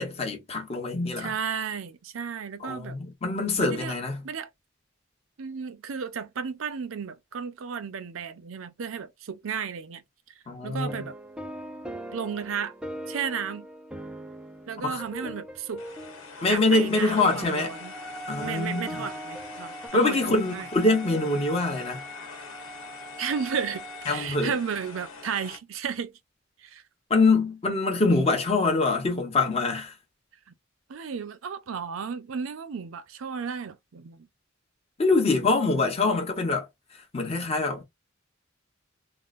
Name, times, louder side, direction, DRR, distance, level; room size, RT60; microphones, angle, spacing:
voice 1, 0.0-1.3 2.6-4.2 10.5-11.1 14.8-15.3 16.4-17.7 18.3-19.0 19.9-22.0 24.1-24.5 27.1-29.9 35.0-36.7 37.1-37.8, left 3 dB, 30° left, 1.0 m, -24 dB
voice 2, 1.2-3.0 3.6-3.9 4.2-4.5 5.4-10.0 10.6-11.1 12.1-12.7 13.1-13.7 14.7-15.8 16.5-17.9 18.4-20.7 23.2-26.1 26.6-26.8 28.0-28.4 30.9-34.3, right 6 dB, 70° right, 0.5 m, -33 dB
sound 1, 10.7-19.9, equal, 5° right, 0.4 m, -41 dB
sound 2, 15.8-25.6, left 1 dB, 90° left, 1.0 m, -40 dB
3.6 x 2.0 x 2.4 m
head